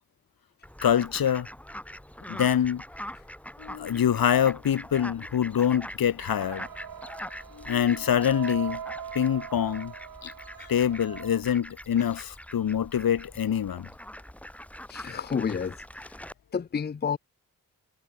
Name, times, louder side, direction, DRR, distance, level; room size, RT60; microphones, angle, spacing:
Fowl, 0.6-16.3, left 1 dB, 5° left, 7.7 m, -43 dB
voice 1, 0.8-1.5 2.3-2.8 3.6-6.7 7.5-8.8 9.1-9.9 10.2-10.3 10.6-13.9, left 9 dB, 85° left, 2.2 m, -25 dB
sound 1, 6.3-11.4, right 8 dB, 75° right, 5.3 m, -41 dB
voice 2, 14.9-15.8 16.0-16.1 16.5-17.2, left 6 dB, 30° left, 0.6 m, -30 dB
wide cardioid pair, 170°, 35 cm